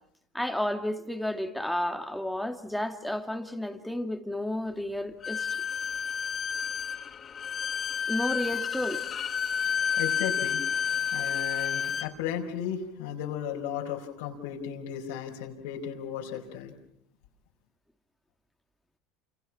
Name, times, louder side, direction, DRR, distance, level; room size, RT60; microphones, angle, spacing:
voice 1, 0.3-5.6 8.1-9.1, left 1 dB, ahead, 2.6 m, -32 dB
Bowed string instrument, 5.2-12.1, left 7 dB, 35° left, 1.6 m, -30 dB
voice 2, 9.6-16.7, left 8 dB, 85° left, 4.7 m, -35 dB
29.0 x 27.5 x 6.1 m
supercardioid pair, 115°, 0 cm